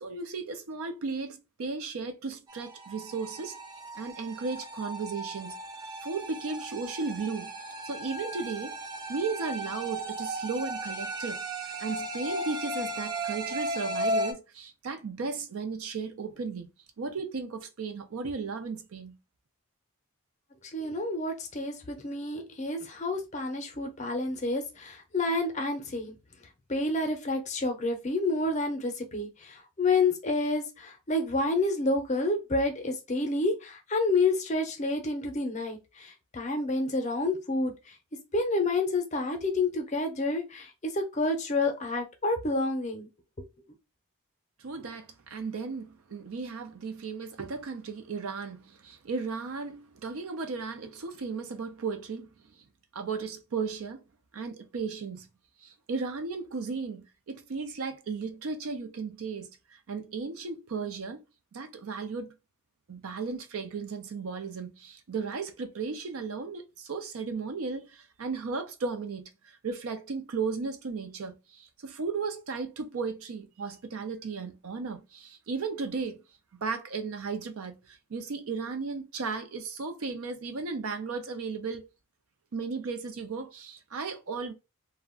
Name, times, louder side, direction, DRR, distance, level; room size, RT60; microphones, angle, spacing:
voice 1, 0.0-3.6 4.0-5.6 6.0-7.5 7.8-8.8 9.1-11.4 11.8-16.7 17.0-19.2 44.6-52.3 52.9-54.0 54.3-55.3 55.6-61.3 61.5-62.3 62.9-76.2 76.6-81.8 82.5-84.5, right 4 dB, 75° right, 0.5 m, -35 dB
sound 1, 2.5-14.3, right 1 dB, 20° right, 0.4 m, -36 dB
voice 2, 20.6-26.1 26.7-37.9 38.3-43.1, left 2 dB, 30° left, 0.6 m, -29 dB
2.3 x 2.1 x 3.6 m
head